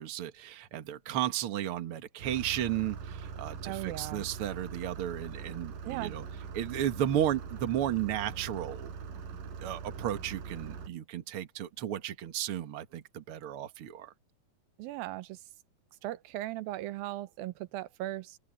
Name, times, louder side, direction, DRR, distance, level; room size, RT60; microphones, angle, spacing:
voice 1, 0.0-6.2 6.5-8.9 9.6-14.1, right 11 dB, 50° right, 1.9 m, -34 dB
Engine starting, 2.2-10.9, right 6 dB, 70° right, 5.3 m, -42 dB
voice 2, 3.6-4.2 5.9-6.2 14.8-15.4 16.0-18.4, right 15 dB, 90° right, 2.6 m, -38 dB
open air
omnidirectional pair, 4.1 m